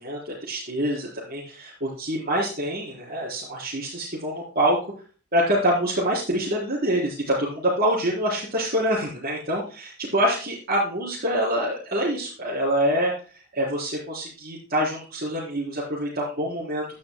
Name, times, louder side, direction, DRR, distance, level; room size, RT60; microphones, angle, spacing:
voice 1, 0.0-4.9 5.3-13.1 13.5-16.9, equal, 45° right, -8 dB, 4.5 m, -25 dB
11.5 x 11.5 x 2.3 m, 0.37 s
head